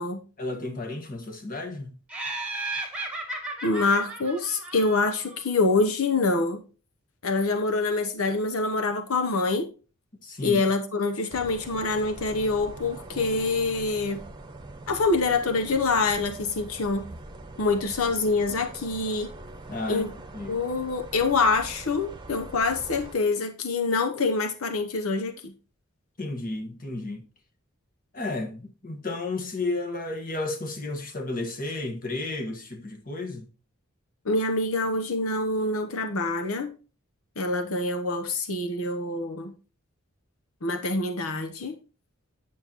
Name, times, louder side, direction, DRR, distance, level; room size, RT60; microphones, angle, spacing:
voice 1, 0.4-2.0 10.2-10.6 19.7-20.6 26.2-27.2 28.1-33.5, left 2 dB, 40° left, 1.6 m, -33 dB
Laughter, 2.1-5.4, right 2 dB, 5° right, 1.6 m, -35 dB
voice 2, 3.6-6.6 7.2-9.7 10.4-14.2 14.9-17.1 17.6-19.3 19.9-20.1 20.5-25.5 34.3-36.7 37.4-39.5 40.6-41.7, left 3 dB, 85° left, 1.0 m, -26 dB
sound 1, 11.3-23.1, right 2 dB, 20° right, 1.0 m, -43 dB
9.3 x 7.4 x 3.0 m
head